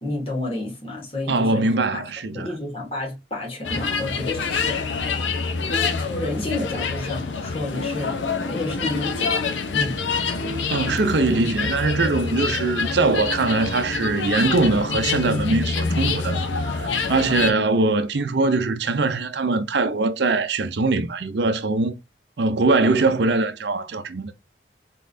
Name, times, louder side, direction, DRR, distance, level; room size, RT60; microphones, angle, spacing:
voice 1, 0.0-2.0 2.3-5.2 5.7-8.2 8.5-10.0, left 2 dB, 30° left, 1.9 m, -30 dB
voice 2, 1.3-2.5 10.7-21.9 22.4-24.3, right 3 dB, 70° right, 0.6 m, -22 dB
sound 1, 3.6-17.5, left 4 dB, 85° left, 0.7 m, -26 dB
4.0 x 3.7 x 2.6 m
head